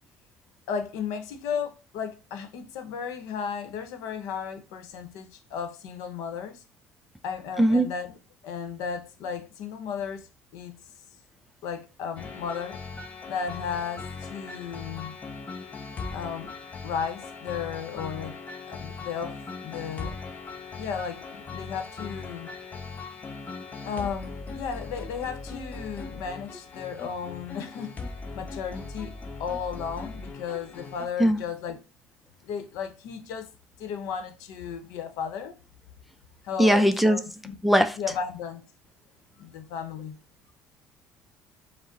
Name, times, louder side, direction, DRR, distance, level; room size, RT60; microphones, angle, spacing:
voice 1, 0.7-6.6 7.2-8.2 8.4-10.3 10.5-10.8 11.6-12.8 13.3-15.1 16.1-16.5 16.8-18.4 18.7-19.4 19.6-20.1 20.8-22.5 23.8-28.0 28.3-29.1 29.4-31.8 32.4-33.5 33.8-35.5 36.4-37.6 38.0-38.6 39.4-40.2, left 7 dB, 80° left, 0.8 m, -34 dB
voice 2, 7.6-7.9 31.2-31.4 36.6-37.2 37.6-38.0, equal, 5° right, 0.4 m, -19 dB
sound 1, 12.2-31.1, left 4 dB, 25° left, 0.8 m, -39 dB
5.1 x 2.0 x 3.9 m
cardioid pair, 110°, 6 cm